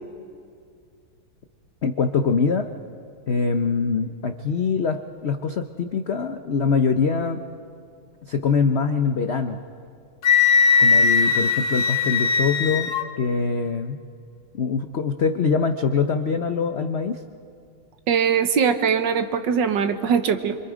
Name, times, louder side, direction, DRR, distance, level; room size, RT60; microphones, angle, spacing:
voice 1, 1.8-2.7 3.3-7.4 8.3-9.6 10.8-14.0 14.5-17.2, left 5 dB, 85° left, 7 dB, 0.5 m, -23 dB
Wind instrument woodwind instrument, 10.2-13.0, left 5 dB, 55° left, 1.6 m, -19 dB
voice 2, 18.1-20.6, right 7 dB, 65° right, 9 dB, 1.6 m, -21 dB
26.5 x 25.5 x 5.0 m, 2.3 s
omnidirectional pair, 2.2 m